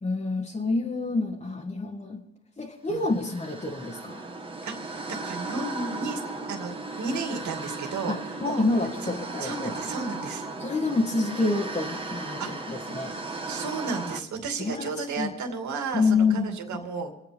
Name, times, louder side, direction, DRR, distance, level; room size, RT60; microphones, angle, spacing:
voice 1, 0.0-2.2 2.6-4.2 8.1-9.7 10.6-13.1 14.6-15.3 15.9-16.8, left 3 dB, 20° left, -3 dB, 1.8 m, -28 dB
sound 1, 2.9-14.2, right 3 dB, 15° right, 1.7 m, -36 dB
voice 2, 4.6-6.2 6.5-6.7 7.0-8.6 9.0-10.5 12.4-12.8 13.5-17.1, right 4 dB, 70° right, 4 dB, 2.6 m, -33 dB
27.0 x 9.0 x 5.3 m, 0.95 s
cardioid pair, 90°, 30 cm